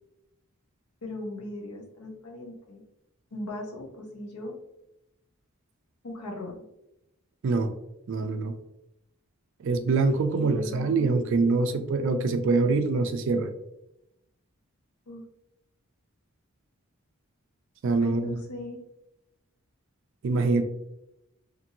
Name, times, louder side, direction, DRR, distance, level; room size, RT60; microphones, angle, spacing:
voice 1, 1.0-2.8 3.3-4.5 6.0-6.7 10.3-10.9 15.1-15.2 18.0-18.8, left 1 dB, 85° left, 1 dB, 0.7 m, -38 dB
voice 2, 8.1-8.5 9.6-13.5 17.8-18.4 20.2-20.6, right 3 dB, 55° right, 8 dB, 0.3 m, -24 dB
2.8 x 2.5 x 2.6 m, 0.85 s
head